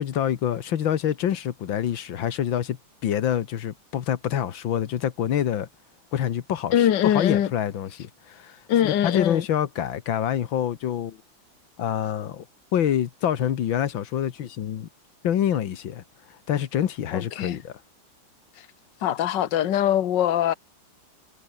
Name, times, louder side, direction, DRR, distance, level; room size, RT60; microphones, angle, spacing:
voice 1, 0.0-2.8 3.0-5.7 6.1-11.2 11.8-12.5 12.7-14.9 15.2-16.0 16.5-17.7, left 10 dB, 90° left, 2.0 m, -26 dB
voice 2, 6.7-7.5 8.7-9.4 17.1-17.6 19.0-20.5, left 10 dB, 70° left, 1.8 m, -22 dB
omnidirectional pair, 2.1 m